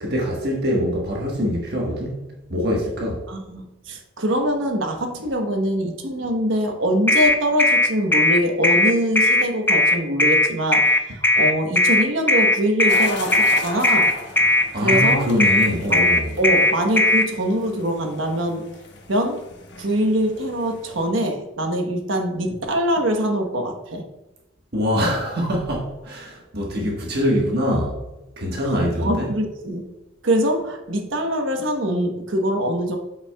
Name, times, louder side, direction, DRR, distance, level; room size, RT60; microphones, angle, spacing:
voice 1, 0.0-3.2 14.7-16.4 24.7-27.9 28.4-29.3, equal, 55° right, -2 dB, 1.4 m, -24 dB
voice 2, 3.3-14.1 14.8-15.3 15.9-16.1 16.4-18.7 19.1-19.4 19.8-24.1 28.6-29.8 30.2-33.0, equal, 80° right, 4 dB, 1.1 m, -23 dB
sound 1, 7.1-17.3, left 2 dB, 10° left, 0.6 m, -17 dB
sound 2, 12.9-21.1, left 2 dB, 60° left, 1.2 m, -37 dB
8.6 x 5.8 x 2.3 m, 0.97 s
head